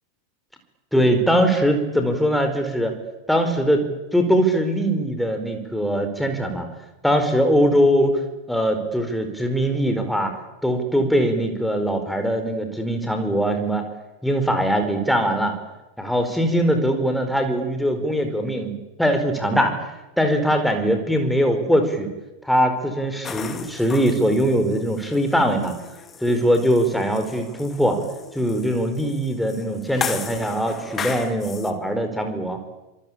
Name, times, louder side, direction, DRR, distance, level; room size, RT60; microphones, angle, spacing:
voice 1, 0.9-2.9 3.3-3.8 4.1-6.7 7.0-8.2 8.5-10.3 10.6-13.9 14.2-15.5 16.0-19.8 20.2-22.1 22.4-25.7 26.2-28.0 28.3-32.6, equal, ahead, 5 dB, 4.7 m, -21 dB
sound 1, 23.2-31.7, left 7 dB, 20° left, 2.5 m, -35 dB
26.0 x 24.5 x 8.8 m, 1.1 s
figure-of-eight pair, 90°, 0 cm